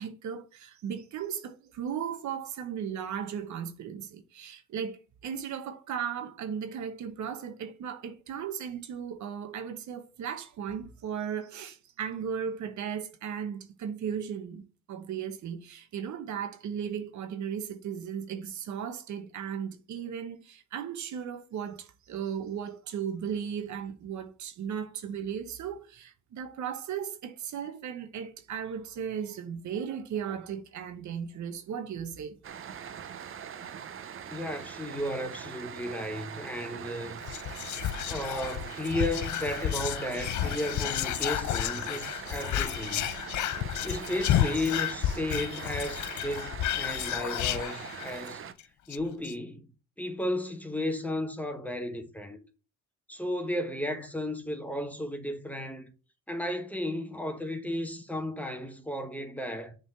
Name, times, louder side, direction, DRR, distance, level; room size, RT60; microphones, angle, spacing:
voice 1, 0.0-32.4 32.8-33.0, right 8 dB, 70° right, 1.1 m, -36 dB
sound 1, 32.4-48.5, right 8 dB, 45° right, 0.7 m, -42 dB
voice 2, 34.3-37.2 38.1-43.1 43.8-48.4 48.9-49.7 50.0-52.4 53.1-55.8 56.3-59.8, left 1 dB, 5° left, 1.4 m, -34 dB
Whispering, 37.2-48.3 48.6-48.7 48.9-49.3, left 12 dB, 70° left, 0.6 m, -31 dB
7.2 x 3.9 x 5.5 m
cardioid pair, 90°, 30 cm